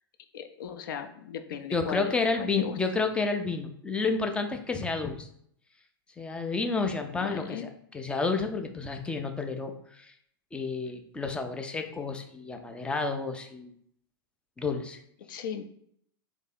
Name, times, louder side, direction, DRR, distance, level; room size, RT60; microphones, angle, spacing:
voice 1, 0.3-2.7 7.2-7.7 15.3-15.6, left 8 dB, 55° left, 7 dB, 0.5 m, -37 dB
voice 2, 1.7-5.3 6.2-7.7 7.9-10.1 10.5-13.7 14.6-15.0, left 4 dB, 10° left, 5 dB, 0.4 m, -30 dB
3.3 x 2.7 x 3.9 m, 0.66 s
figure-of-eight pair, 100°, 13 cm